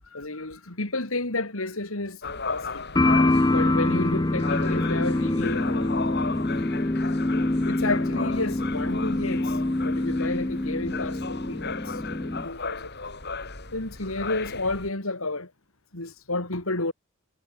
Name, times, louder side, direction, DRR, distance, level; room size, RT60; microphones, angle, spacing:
voice 1, 0.1-2.8 3.5-5.9 6.6-6.8 7.6-12.9 13.7-15.5 15.9-16.9, left 2 dB, 75° left, 3.8 m, -31 dB
sound 1, 2.2-14.9, left 4 dB, 50° left, 7.0 m, -35 dB
sound 2, 3.0-12.5, left 2 dB, 20° left, 0.6 m, -25 dB
head